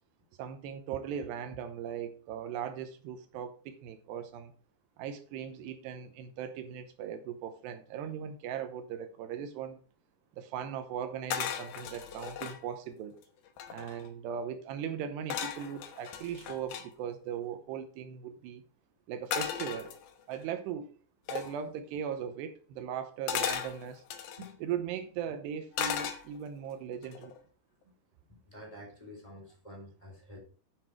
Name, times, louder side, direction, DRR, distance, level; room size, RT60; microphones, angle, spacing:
voice 1, 0.4-4.5 5.0-9.8 10.4-13.2 13.7-18.6 19.1-20.0 20.3-20.9 21.3-24.0 24.6-27.3, right 8 dB, 80° right, 2.9 m, -38 dB
sound 1, 11.3-12.6 13.2-13.3 13.5-14.1 15.3-16.9 19.3-20.4 21.3-21.6 23.3-24.5 25.7-26.6 27.0-27.4, left 8 dB, 80° left, 1.8 m, -36 dB
voice 2, 28.3-30.4, equal, 10° left, 2.4 m, -49 dB
9.9 x 6.4 x 4.5 m
omnidirectional pair, 5.1 m